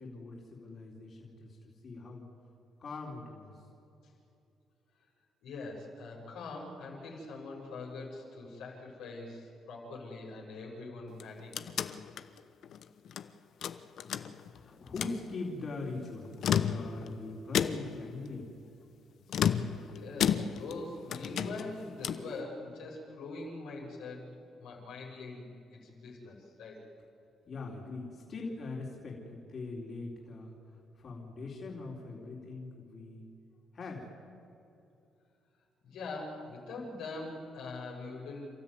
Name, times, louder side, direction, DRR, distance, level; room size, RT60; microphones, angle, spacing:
voice 1, 0.0-1.6 1.8-2.2 2.8-3.6 13.6-14.2 14.5-18.5 27.5-30.5 30.9-33.3 33.7-34.1, left 3 dB, 50° left, -2 dB, 4.2 m, -42 dB
voice 2, 5.4-11.5 19.9-24.3 24.6-25.5 25.7-26.8 35.8-38.5, left 3 dB, 85° left, -2 dB, 6.7 m, -43 dB
sound 1, 11.1-13.3 13.6-14.6 14.9-15.2 16.2-17.1 17.5-18.1 19.3-20.8 21.1-22.3, left 8 dB, 70° left, 1.0 m, -32 dB
30.0 x 13.5 x 9.6 m, 2.7 s
cardioid pair, 90°, 0 cm